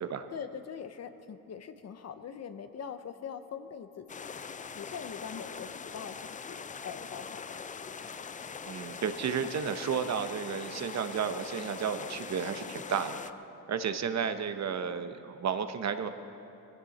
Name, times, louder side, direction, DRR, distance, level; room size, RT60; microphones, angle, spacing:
voice 1, 0.3-7.6, left 7 dB, 40° left, 10 dB, 0.9 m, -43 dB
sound 1, 4.1-13.3, left 6 dB, 20° left, 0.5 m, -42 dB
voice 2, 8.6-13.2 13.7-16.1, right 7 dB, 45° right, 9 dB, 1.0 m, -32 dB
20.5 x 16.0 x 4.3 m, 2.8 s
supercardioid pair, 80°, 38 cm